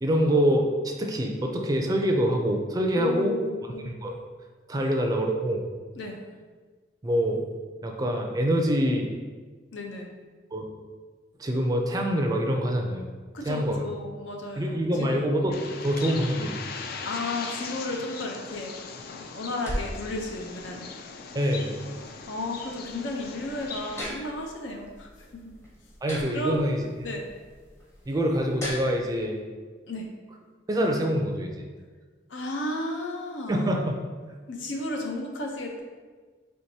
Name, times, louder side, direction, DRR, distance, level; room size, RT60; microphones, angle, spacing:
voice 1, 0.0-3.3 3.9-4.2 4.7-5.6 7.0-7.4 7.8-9.2 10.5-10.7 11.4-13.1 13.4-13.9 14.6-16.6 21.3-21.8 26.0-26.8 28.1-29.4 30.7-31.7 33.5-33.9, equal, 20° right, 2 dB, 0.4 m, -25 dB
voice 2, 3.0-3.9 4.8-4.9 6.0-6.2 9.7-10.1 13.3-15.3 16.1-16.2 17.0-18.8 19.3-20.8 22.3-25.5 26.3-26.6 27.0-27.2 29.9-30.1 32.3-33.7 34.5-35.8, left 2 dB, 85° left, 1 dB, 0.6 m, -33 dB
Bird, 15.5-24.0, left 5 dB, 55° left, 0.3 m, -39 dB
sound 1, 18.5-29.2, equal, 15° left, 0.7 m, -41 dB
4.5 x 3.4 x 2.7 m, 1.4 s
head